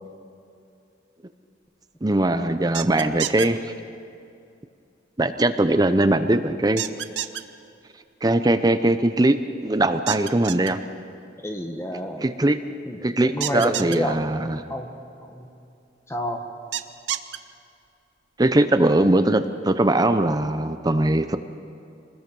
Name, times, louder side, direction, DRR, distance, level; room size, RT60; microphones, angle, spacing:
voice 1, 2.0-3.7 5.2-6.8 8.2-10.8 12.2-12.6 13.0-14.6 18.4-21.4, right 1 dB, 20° right, 10 dB, 0.6 m, -21 dB
sound 1, 2.7-3.5 6.8-7.4 10.1-10.7 13.4-14.0 16.7-17.4, right 11 dB, 70° right, 0.7 m, -28 dB
voice 2, 11.4-12.3 12.8-14.1 14.7-14.9 15.3-15.5 16.1-16.4, equal, 15° left, 4 dB, 1.5 m, -29 dB
26.5 x 20.5 x 5.4 m, 2.6 s
head